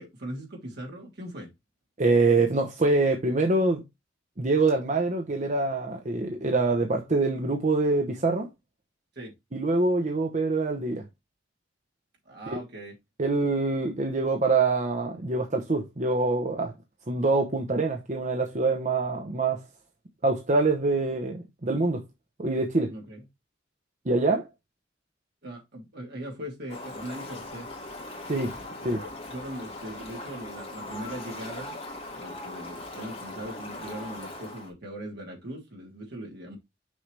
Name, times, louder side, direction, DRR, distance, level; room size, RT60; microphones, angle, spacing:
voice 1, 0.0-1.5 9.1-9.3 12.2-12.9 22.9-23.2 25.4-27.7 28.9-31.8 32.1-36.6, right 1 dB, 60° right, 3.1 m, -40 dB
voice 2, 2.0-3.8 4.4-8.5 9.5-11.0 12.5-12.6 13.2-16.7 17.1-19.6 20.2-22.0 22.4-22.9 24.0-24.5 28.3-28.5 28.8-29.0, right 3 dB, 40° right, 0.9 m, -25 dB
Fowl, 26.7-34.7, left 2 dB, 35° left, 2.6 m, -40 dB
6.3 x 5.6 x 3.3 m
head